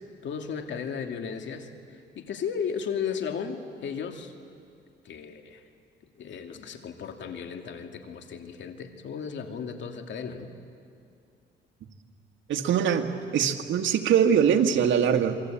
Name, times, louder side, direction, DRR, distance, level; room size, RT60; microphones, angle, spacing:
voice 1, 0.2-4.3 5.0-5.6 6.2-10.5, left 6 dB, 70° left, 5 dB, 2.4 m, -35 dB
voice 2, 12.5-15.4, right 8 dB, 75° right, 5 dB, 1.9 m, -23 dB
27.0 x 23.0 x 8.9 m, 2.4 s
cardioid pair, 90°, 20 cm